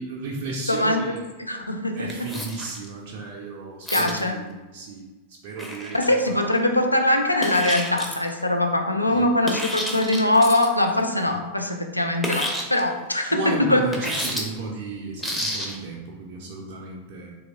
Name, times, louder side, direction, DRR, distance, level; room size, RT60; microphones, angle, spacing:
voice 1, 0.0-1.2 2.0-5.1 5.4-6.5 9.1-9.2 13.2-17.4, right 3 dB, 50° right, -3 dB, 0.5 m, -34 dB
voice 2, 0.7-2.3 3.9-4.4 5.9-13.8, left 1 dB, 85° left, 4 dB, 0.3 m, -22 dB
sound 1, 2.1-2.9 3.9-4.2 5.6-6.4 7.4-8.3 9.4-10.8 12.2-12.8 13.9-14.4 15.2-15.8, equal, 5° left, 0.5 m, -30 dB
3.4 x 2.9 x 2.7 m, 1.2 s
figure-of-eight pair, 90°, 0 cm